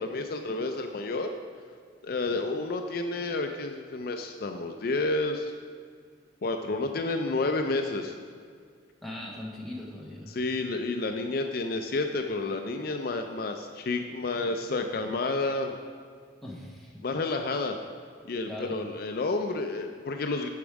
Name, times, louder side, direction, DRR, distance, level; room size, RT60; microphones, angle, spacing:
voice 1, 0.0-1.3 2.0-5.5 6.4-8.1 10.3-15.7 17.0-17.8 18.3-20.5, left 3 dB, 50° left, 5 dB, 0.4 m, -30 dB
voice 2, 9.0-10.4 16.4-17.0 18.5-18.8, left 1 dB, ahead, -3 dB, 1.1 m, -40 dB
8.4 x 6.2 x 4.7 m, 2.1 s
head